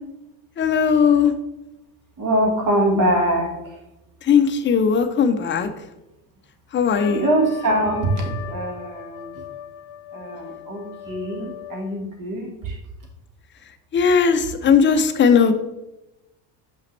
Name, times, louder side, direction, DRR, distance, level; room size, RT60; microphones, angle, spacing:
voice 1, 0.6-1.3 4.2-5.7 6.7-7.3 13.9-15.5, left 6 dB, 25° left, 8 dB, 0.5 m, -18 dB
voice 2, 2.2-3.8 7.1-9.4 10.1-12.8, right 1 dB, 40° right, 1 dB, 1.8 m, -23 dB
Trumpet, 7.0-12.0, left 11 dB, 60° left, 0.7 m, -38 dB
5.6 x 5.2 x 3.3 m, 0.95 s
supercardioid pair, 85°, 49 cm